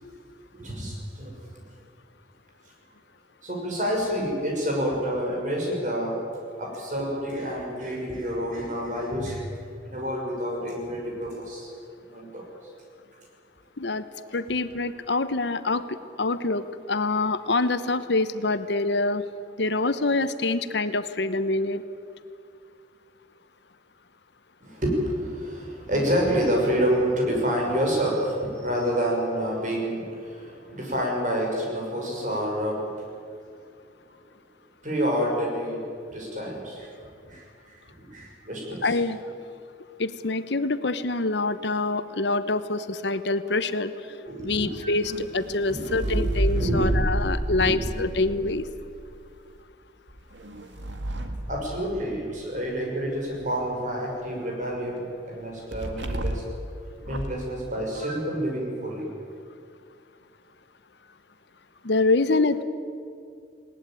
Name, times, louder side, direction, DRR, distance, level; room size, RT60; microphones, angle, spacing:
voice 1, 0.5-1.3 3.4-6.2 6.6-9.5 9.8-11.7 12.1-12.5 24.6-32.9 34.8-35.8 36.1-36.9 37.2-38.9 44.3-44.9 45.7-46.2 46.5-47.0 47.6-47.8 51.5-56.4 57.1-59.1, equal, 45° right, -1 dB, 6.1 m, -28 dB
voice 2, 14.3-19.3 19.6-21.8 38.8-39.2 40.0-44.1 44.4-48.6 61.8-62.6, left 3 dB, 75° left, 12 dB, 1.0 m, -25 dB
sound 1, 45.0-49.1 50.1-52.4 55.7-56.6 57.0-57.5, right 1 dB, 85° right, 1.9 m, -30 dB
20.5 x 18.5 x 9.1 m, 2.3 s
head